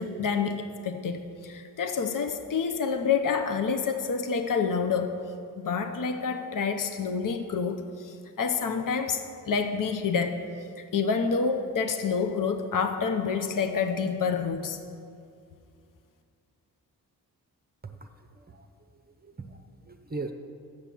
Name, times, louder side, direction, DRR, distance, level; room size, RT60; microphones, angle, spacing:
voice 1, 0.0-5.1 5.6-10.4 10.9-14.8, left 5 dB, 55° left, 7 dB, 0.8 m, -28 dB
voice 2, 17.8-18.7 18.9-20.3, right 3 dB, 25° right, 6 dB, 0.7 m, -40 dB
6.8 x 6.8 x 7.6 m, 2.3 s
cardioid pair, 55°, 39 cm